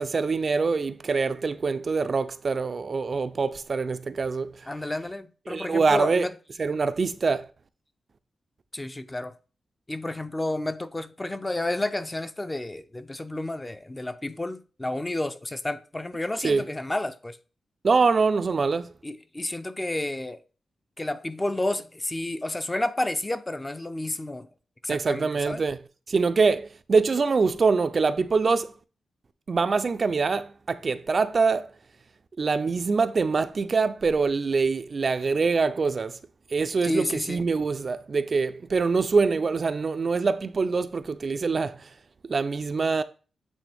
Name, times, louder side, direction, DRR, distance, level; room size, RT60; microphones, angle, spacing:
voice 1, 0.0-4.7 5.5-6.3 6.6-7.5 16.4-16.6 17.8-18.9 24.9-25.8 26.1-28.7 29.5-31.7 32.4-36.2 36.5-41.9 42.3-43.0, right 4 dB, 45° right, 0.4 m, -24 dB
voice 2, 4.7-6.3 8.7-9.3 9.9-17.4 19.0-20.4 21.0-24.5 24.8-25.6 36.8-37.5, left 1 dB, 15° left, 0.5 m, -31 dB
8.2 x 3.3 x 3.4 m
wide cardioid pair, 100°, 0 cm